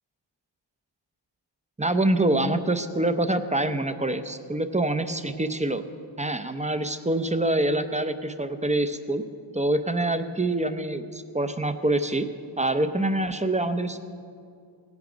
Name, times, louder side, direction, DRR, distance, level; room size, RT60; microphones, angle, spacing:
voice 1, 1.8-5.8 6.2-9.2 9.5-12.3 12.6-14.0, right 1 dB, 15° right, 10 dB, 0.6 m, -25 dB
17.0 x 9.6 x 5.1 m, 2.3 s
wide cardioid pair, 95°, 47 cm